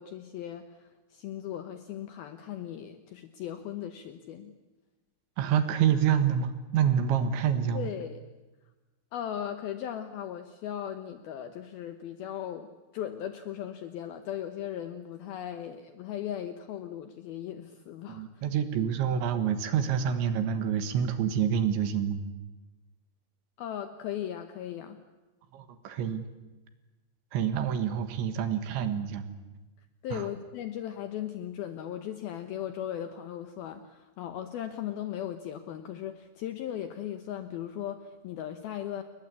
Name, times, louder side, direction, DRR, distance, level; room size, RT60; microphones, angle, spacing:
voice 1, 0.0-4.5 7.7-8.2 9.1-18.3 23.6-25.0 30.0-39.0, left 10 dB, 85° left, 8 dB, 2.1 m, -37 dB
voice 2, 5.4-7.9 18.1-22.2 25.5-26.3 27.3-29.3 30.1-30.3, right 8 dB, 70° right, 9 dB, 3.5 m, -27 dB
29.5 x 21.5 x 8.4 m, 1.1 s
omnidirectional pair, 5.9 m